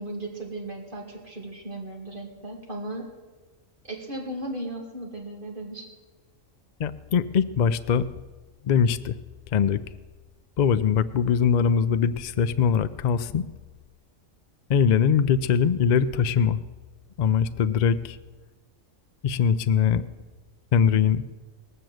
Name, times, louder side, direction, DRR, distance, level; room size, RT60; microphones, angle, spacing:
voice 1, 0.0-3.1 3.9-5.9, right 1 dB, 40° right, 0 dB, 2.8 m, -36 dB
voice 2, 6.8-8.0 8.6-9.1 9.5-9.8 10.6-13.4 14.7-16.6 17.2-18.2 19.2-20.0 20.7-21.2, left 7 dB, 65° left, 13 dB, 0.4 m, -22 dB
19.5 x 6.8 x 7.7 m, 1.3 s
omnidirectional pair, 1.4 m